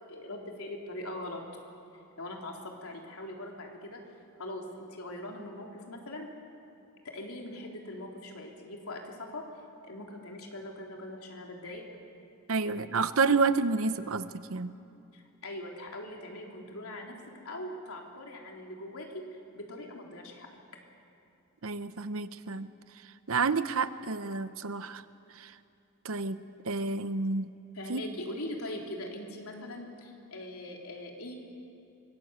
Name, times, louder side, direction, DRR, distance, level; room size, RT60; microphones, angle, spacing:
voice 1, 0.1-1.4 2.2-4.0 4.4-6.3 7.0-9.5 9.8-11.8 12.6-12.7 15.1-17.2 17.5-19.2 19.5-20.5 27.7-31.4, left 1 dB, 75° left, 0 dB, 3.6 m, -41 dB
voice 2, 12.5-14.7 21.6-22.7 23.3-25.0 25.4-25.5 26.0-26.4 26.6-27.5 27.9-28.0, right 4 dB, 65° right, 12 dB, 0.9 m, -29 dB
25.0 x 21.5 x 8.1 m, 2.7 s
head